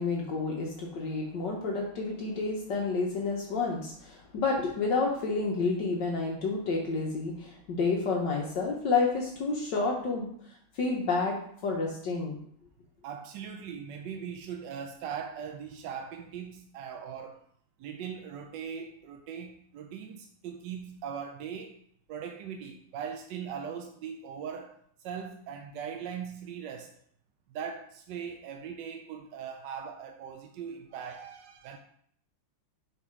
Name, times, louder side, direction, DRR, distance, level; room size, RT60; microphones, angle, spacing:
voice 1, 0.0-10.3 10.7-11.4 11.6-12.4, left 4 dB, 60° left, -1 dB, 1.4 m, -30 dB
voice 2, 13.0-17.4 17.8-21.8 22.1-26.9 27.5-31.8, right 7 dB, 75° right, 4 dB, 1.0 m, -40 dB
5.3 x 4.1 x 4.9 m, 0.66 s
omnidirectional pair, 2.3 m